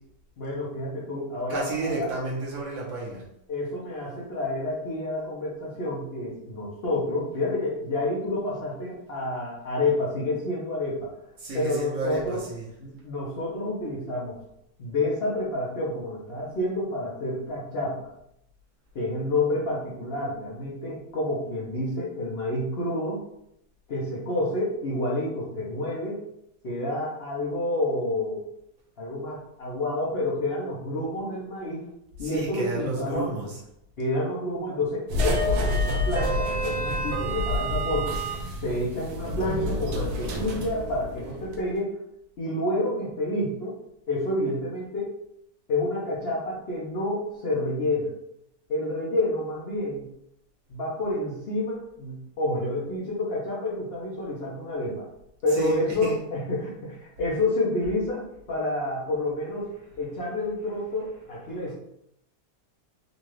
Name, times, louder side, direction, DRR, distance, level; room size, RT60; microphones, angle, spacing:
voice 1, 0.4-2.1 3.5-11.1 11.5-12.4 12.8-14.4 14.8-18.1 18.9-23.2 23.9-26.2 26.6-28.5 29.0-31.9 32.2-33.3 34.0-38.2 38.6-41.9 42.4-43.8 44.1-45.2 45.7-48.1 48.7-50.0 50.7-55.1 55.4-59.7 60.0-61.7, left 1 dB, 45° left, -6 dB, 0.8 m, -29 dB
voice 2, 1.5-3.2 11.4-12.6 32.2-33.6 55.5-56.2 61.5-61.7, right 3 dB, 50° right, -2 dB, 1.2 m, -31 dB
sound 1, 35.1-41.6, equal, 70° right, 1.1 m, -28 dB
4.0 x 2.4 x 3.2 m, 0.78 s
omnidirectional pair, 1.9 m